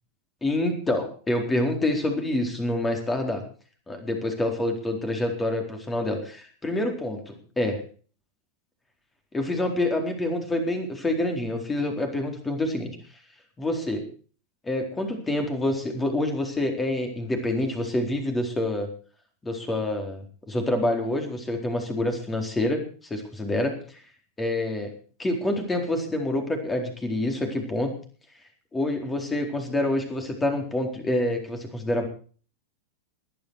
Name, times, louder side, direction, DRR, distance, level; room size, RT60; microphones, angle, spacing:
voice 1, 0.4-3.4 3.9-7.8 9.3-12.9 13.6-14.0 14.6-18.9 19.4-22.8 23.1-24.0 24.4-24.9 25.2-27.9 28.7-32.1, left 1 dB, 15° left, 4 dB, 4.2 m, -27 dB
20.0 x 11.5 x 4.8 m, 0.41 s
figure-of-eight pair, 90°, 0 cm